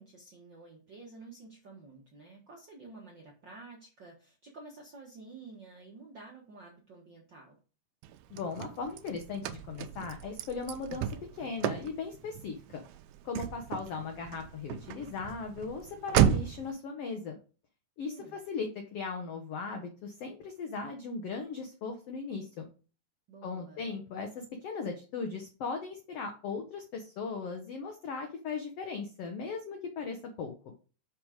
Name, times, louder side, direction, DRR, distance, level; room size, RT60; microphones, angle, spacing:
voice 1, 0.0-7.6 18.0-18.4 23.3-23.8, right 3 dB, 65° right, -2 dB, 1.1 m, -51 dB
Car / Slam, 8.0-16.7, right 10 dB, 80° right, 1.9 m, -33 dB
voice 2, 8.3-11.1 11.3-12.8 13.2-17.4 18.0-22.7 23.4-24.3 24.6-30.5, left 4 dB, 80° left, 4 dB, 1.3 m, -38 dB
6.2 x 5.1 x 4.9 m, 0.36 s
omnidirectional pair, 3.9 m